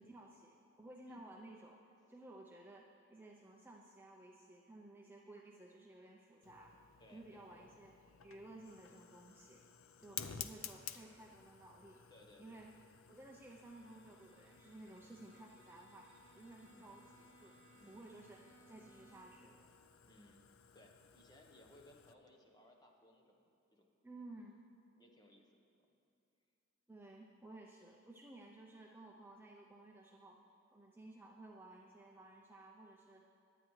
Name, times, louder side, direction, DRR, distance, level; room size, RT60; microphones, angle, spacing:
voice 1, 0.0-1.8 2.1-6.7 7.1-7.9 8.2-9.6 10.0-12.0 12.4-12.7 13.1-17.5 17.9-18.4 18.7-19.7 24.0-24.7 26.9-30.4 30.7-33.3, right 2 dB, 10° right, -1 dB, 0.5 m, -56 dB
Fire, 6.4-22.1, left 8 dB, 75° left, 0.5 m, -54 dB
voice 2, 7.0-7.7 10.1-10.3 12.1-12.6 16.7-16.9 17.7-18.1 20.1-20.4 20.7-23.9 25.0-25.9, left 1 dB, 20° left, 2 dB, 1.0 m, -64 dB
Bowed string instrument, 13.1-19.5, right 3 dB, 60° right, 2.2 m, -67 dB
20.5 x 8.8 x 3.2 m, 2.8 s
head